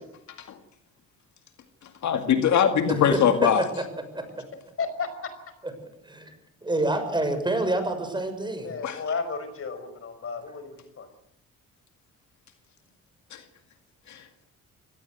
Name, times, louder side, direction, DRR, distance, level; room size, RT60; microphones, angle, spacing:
voice 1, 2.0-3.6 8.8-9.0 13.3-13.4 14.1-14.2, left 8 dB, 70° left, 6 dB, 2.2 m, -22 dB
voice 2, 2.9-3.2 4.1-4.2 6.0-6.3 6.6-8.7, right 2 dB, 15° right, 8 dB, 6.5 m, -27 dB
voice 3, 4.8-5.1 8.6-11.1, left 5 dB, 45° left, 10 dB, 5.4 m, -33 dB
24.0 x 18.0 x 8.0 m, 0.76 s
cardioid pair, 90°, 30 cm